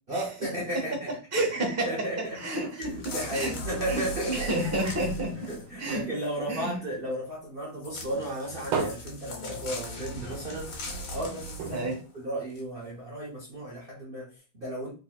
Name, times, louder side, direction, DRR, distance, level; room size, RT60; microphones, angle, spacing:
voice 1, 0.1-1.1 1.8-2.4 2.8-4.5 5.4-10.7 11.1-11.9 12.2-14.9, right 1 dB, 60° right, -5 dB, 0.5 m, -34 dB
voice 2, 1.3-2.1 2.3-3.5 3.8-6.0 6.5-6.8 11.7-12.0, right 1 dB, 15° right, -1 dB, 0.6 m, -30 dB
sound 1, 2.8-5.8 7.8-12.0 12.6-12.7, equal, 85° left, 1.9 m, -38 dB
sound 2, 5.0-7.6 8.0-10.2 10.6-10.7 11.0-11.1 11.6-13.1 13.7-13.8, right 5 dB, 90° right, 1.6 m, -37 dB
4.0 x 3.6 x 2.2 m, 0.35 s
omnidirectional pair, 2.3 m